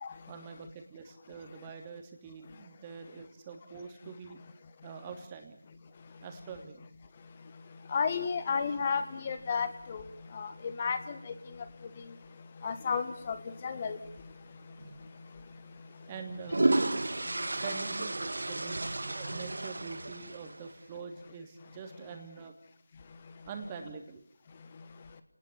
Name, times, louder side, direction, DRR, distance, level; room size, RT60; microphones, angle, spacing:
voice 1, 0.3-4.4 4.8-5.6 6.2-6.8 16.1-16.7 17.5-22.5 23.5-24.3, right 5 dB, 15° right, 3.0 m, -45 dB
voice 2, 7.9-10.0 10.3-10.5 10.8-11.2 12.6-13.4 13.6-14.0, left 6 dB, 25° left, 1.5 m, -32 dB
sound 1, 14.8-15.0 16.1-20.7, right 2 dB, 70° right, 2.2 m, -32 dB
30.0 x 20.0 x 8.5 m
figure-of-eight pair, 170°, 0 cm